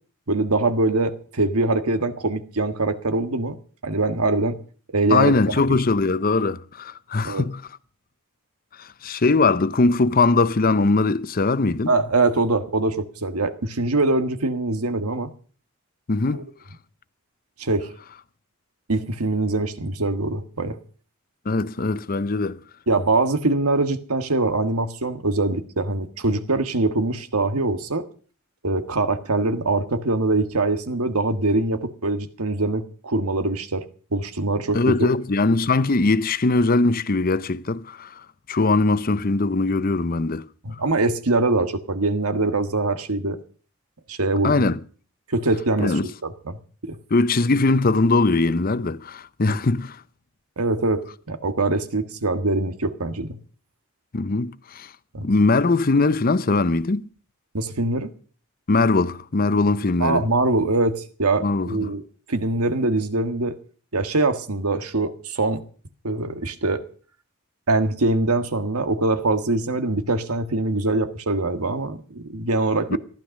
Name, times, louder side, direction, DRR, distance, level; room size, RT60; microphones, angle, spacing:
voice 1, 0.3-3.6 3.8-4.6 4.9-5.3 5.7-5.8 7.2-7.4 11.9-15.3 16.3-16.4 17.6-17.9 18.9-20.8 22.9-28.1 28.6-33.8 34.1-35.1 40.6-43.4 44.1-44.7 45.3-47.0 49.5-49.6 50.6-53.4 55.1-55.3 57.5-58.1 60.0-62.0 62.3-63.6 63.9-65.6 66.0-66.8 67.7-73.0, right 2 dB, 90° right, 1.6 m, -23 dB
voice 2, 5.1-7.6 8.8-11.9 16.1-16.5 21.5-22.6 34.7-40.8 44.4-44.8 45.8-46.1 47.1-50.0 54.1-54.9 55.2-57.1 58.7-60.3 61.4-61.9 72.9-73.0, left 3 dB, 40° left, 0.6 m, -21 dB
15.0 x 12.0 x 6.4 m
head